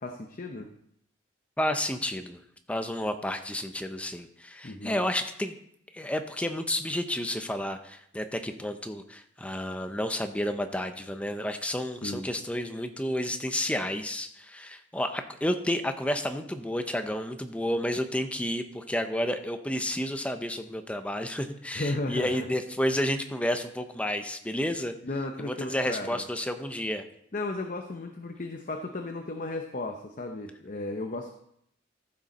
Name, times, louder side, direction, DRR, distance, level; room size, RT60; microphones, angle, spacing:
voice 1, 0.0-0.7 4.6-5.0 12.0-12.3 21.7-22.5 25.0-26.2 27.3-31.3, left 2 dB, 45° left, 4 dB, 0.8 m, -34 dB
voice 2, 1.6-2.4 2.7-5.6 5.9-24.9 25.4-27.0, left 1 dB, 5° left, 7 dB, 0.7 m, -31 dB
14.5 x 6.4 x 4.2 m, 0.71 s
head